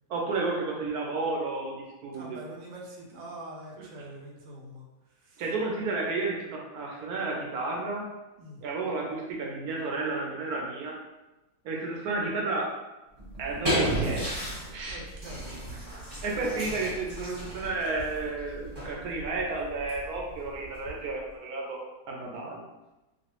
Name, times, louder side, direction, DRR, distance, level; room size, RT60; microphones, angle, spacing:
voice 1, 0.1-2.4 3.8-3.9 5.4-8.0 8.6-11.0 11.6-12.7 13.4-14.3 14.7-15.0 16.2-21.8 22.1-22.6, right 3 dB, 70° right, -1 dB, 1.1 m, -32 dB
voice 2, 2.1-5.4 8.4-8.6 14.9-16.2, right 1 dB, 90° right, -1 dB, 1.3 m, -45 dB
sound 1, 13.2-21.3, right 1 dB, 25° right, 0.9 m, -35 dB
3.0 x 2.3 x 2.9 m, 1.0 s
omnidirectional pair, 1.8 m